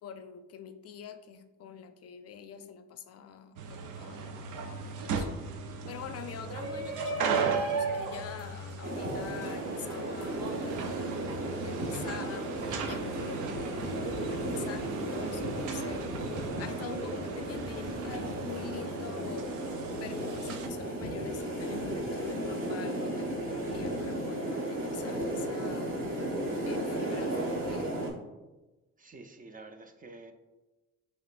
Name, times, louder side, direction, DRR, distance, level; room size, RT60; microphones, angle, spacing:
voice 1, 0.0-5.3 5.9-26.2 26.7-27.9, left 8 dB, 55° left, 9 dB, 0.4 m, -45 dB
sound 1, 3.6-20.7, right 5 dB, 85° right, 0.5 m, -38 dB
Shout, 6.3-11.5, right 5 dB, 65° right, 1.3 m, -35 dB
sound 2, 8.8-28.1, right 1 dB, 45° right, 1.4 m, -35 dB
voice 2, 13.3-13.6 29.0-30.3, right 3 dB, 30° right, 6 dB, 0.4 m, -49 dB
6.1 x 2.9 x 2.5 m, 1.1 s
cardioid pair, 90°, 30 cm